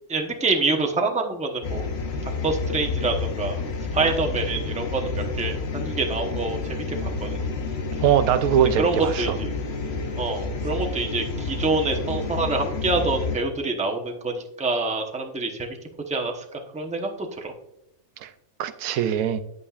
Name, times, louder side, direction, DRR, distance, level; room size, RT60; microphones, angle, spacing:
voice 1, 0.1-1.8 2.4-3.6 3.9-6.6 7.2-7.4 8.8-9.3 10.2-15.7 16.1-17.5, right 3 dB, 5° right, 2 dB, 0.7 m, -26 dB
sound 1, 1.6-13.4, left 3 dB, 50° left, 1.1 m, -29 dB
voice 2, 8.0-9.4 18.2-18.3 18.6-19.4, right 9 dB, 85° right, 11 dB, 1.1 m, -22 dB
9.5 x 8.5 x 2.4 m, 0.80 s
omnidirectional pair, 1.5 m